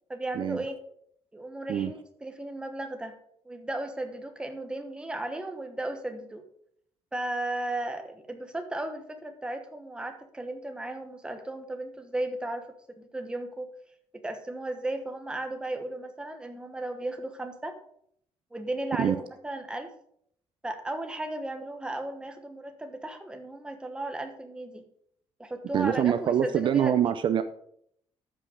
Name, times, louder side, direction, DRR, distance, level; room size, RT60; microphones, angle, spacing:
voice 1, 0.1-0.8 1.3-3.1 3.4-6.4 7.1-12.7 13.0-13.7 14.1-17.8 18.5-19.9 20.6-24.8 25.4-27.1, right 1 dB, 10° right, 6 dB, 1.1 m, -35 dB
voice 2, 25.7-27.4, right 9 dB, 50° right, 11 dB, 0.5 m, -24 dB
13.0 x 5.5 x 4.9 m, 0.68 s
cardioid pair, 165°, 10 cm